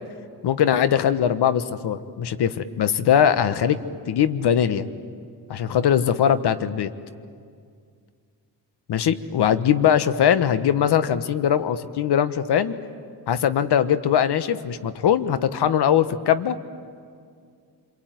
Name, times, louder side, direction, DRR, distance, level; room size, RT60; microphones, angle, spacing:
voice 1, 0.4-3.8 4.1-4.9 5.5-6.9 8.9-12.7 13.3-16.6, left 9 dB, 60° left, 12 dB, 1.4 m, -21 dB
27.0 x 23.0 x 9.4 m, 2.2 s
supercardioid pair, 70°, 44 cm